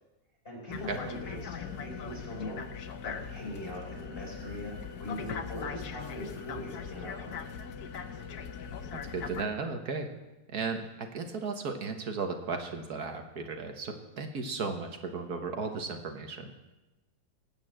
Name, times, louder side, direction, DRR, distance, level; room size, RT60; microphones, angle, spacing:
voice 1, 0.4-7.5, left 1 dB, 35° left, -2 dB, 4.5 m, -41 dB
sound 1, 0.7-9.4, left 6 dB, 70° left, 1.4 m, -40 dB
voice 2, 9.1-10.1 10.5-16.5, right 4 dB, 65° right, 5 dB, 1.7 m, -35 dB
18.0 x 8.9 x 7.7 m, 1.1 s
omnidirectional pair, 1.8 m